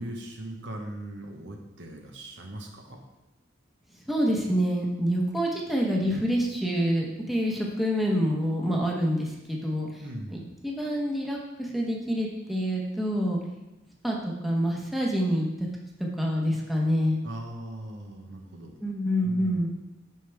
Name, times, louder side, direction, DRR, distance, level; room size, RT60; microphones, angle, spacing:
voice 1, 0.0-3.0 10.0-10.6 17.2-18.8 19.2-19.7, right 1 dB, 70° right, 1 dB, 1.2 m, -39 dB
voice 2, 4.1-9.9 10.3-13.4 14.0-15.5 16.0-17.2 18.8-19.7, equal, ahead, -2 dB, 1.1 m, -27 dB
8.4 x 5.7 x 3.5 m, 0.98 s
head